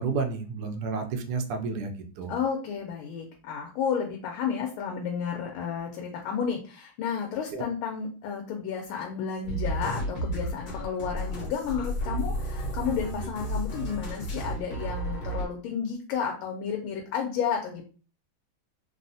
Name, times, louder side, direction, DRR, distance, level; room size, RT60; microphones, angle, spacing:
voice 1, 0.0-2.3 7.5-7.6, right 4 dB, 90° right, 5 dB, 0.8 m, -31 dB
voice 2, 2.3-17.8, left 7 dB, 80° left, 2 dB, 1.4 m, -32 dB
sound 1, 9.4-15.4, right 1 dB, 55° left, 1.3 m, -32 dB
3.6 x 2.0 x 2.5 m, 0.38 s
omnidirectional pair, 2.3 m